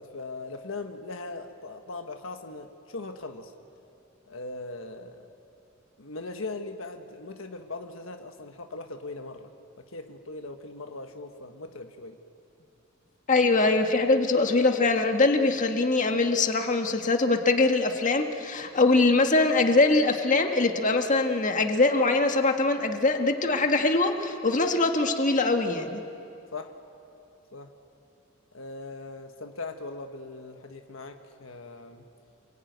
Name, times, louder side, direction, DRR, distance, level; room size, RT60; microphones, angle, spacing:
voice 1, 0.0-3.5 4.3-5.2 6.0-9.5 9.8-12.2 26.5-26.7 27.5-27.7 28.5-32.0, left 3 dB, 70° left, 5 dB, 1.4 m, -39 dB
voice 2, 13.3-26.0, left 3 dB, 40° left, 4 dB, 1.7 m, -23 dB
28.5 x 21.0 x 9.4 m, 2.6 s
head